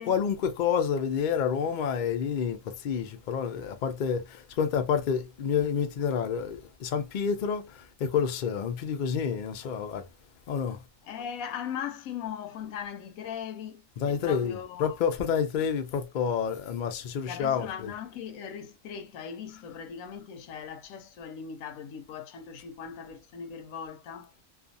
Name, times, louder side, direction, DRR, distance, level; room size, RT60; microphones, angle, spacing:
voice 1, 0.0-2.6 2.8-4.3 4.6-7.6 8.0-10.0 10.5-10.8 14.0-17.9, left 7 dB, 70° left, 0.4 m, -28 dB
voice 2, 11.0-15.0 17.3-24.3, left 8 dB, 90° left, 1.0 m, -39 dB
2.4 x 2.3 x 2.5 m
omnidirectional pair, 1.4 m